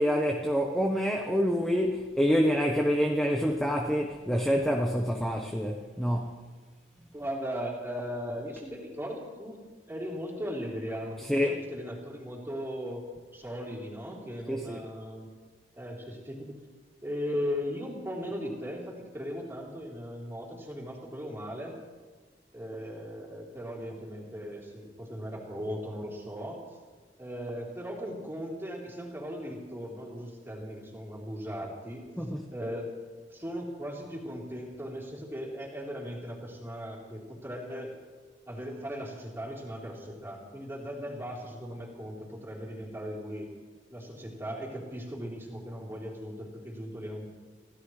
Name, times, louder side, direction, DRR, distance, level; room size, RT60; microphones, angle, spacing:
voice 1, 0.0-6.4 11.3-11.6 14.5-14.8 32.2-32.4, equal, 5° left, 1 dB, 1.0 m, -27 dB
voice 2, 7.1-9.6 9.9-13.0 13.3-15.3 15.8-16.6 17.0-21.8 22.5-26.6 27.2-32.0 32.5-32.9 33.3-37.9 38.5-43.5 43.9-47.3, equal, 15° right, -3 dB, 3.8 m, -38 dB
26.0 x 16.5 x 3.3 m, 1.4 s
head